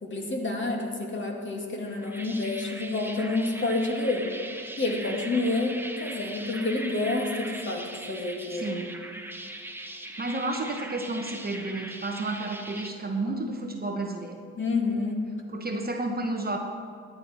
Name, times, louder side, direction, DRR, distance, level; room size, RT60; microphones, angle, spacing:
voice 1, 0.0-4.3 4.8-8.8 14.6-15.3, left 2 dB, 35° left, 1 dB, 2.3 m, -29 dB
sound 1, 1.9-12.9, right 1 dB, 5° right, 1.2 m, -40 dB
voice 2, 8.5-8.9 10.2-14.4 15.5-16.6, right 2 dB, 25° right, 3 dB, 1.2 m, -31 dB
12.5 x 8.8 x 4.4 m, 2.3 s
supercardioid pair, 60°, 35 cm